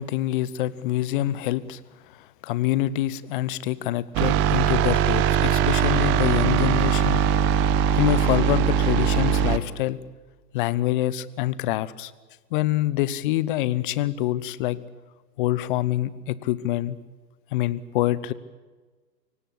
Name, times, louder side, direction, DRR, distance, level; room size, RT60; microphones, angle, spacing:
voice 1, 0.0-1.8 2.4-7.2 7.9-10.0 10.5-12.1 12.5-14.8 15.4-17.0 17.5-18.3, left 14 dB, 30° left, 18 dB, 1.0 m, -25 dB
sound 1, 4.1-9.6, right 8 dB, 20° right, 1.0 m, -21 dB
24.5 x 18.5 x 8.6 m, 1.3 s
figure-of-eight pair, 120°, 49 cm